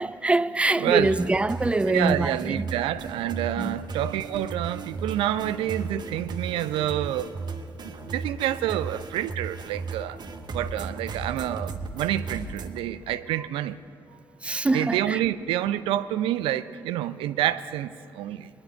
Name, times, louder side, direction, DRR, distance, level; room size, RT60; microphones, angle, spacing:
voice 1, 0.0-2.7 3.6-3.8 13.4-13.5 14.4-15.2, right 2 dB, 10° right, 0.4 m, -24 dB
voice 2, 0.8-1.1 1.9-7.3 7.8-10.2 10.5-13.8 14.7-18.5, right 12 dB, 75° right, 0.4 m, -28 dB
sound 1, 1.0-12.8, right 4 dB, 50° right, 1.0 m, -36 dB
21.5 x 11.0 x 4.5 m
hypercardioid pair, 45°, 9 cm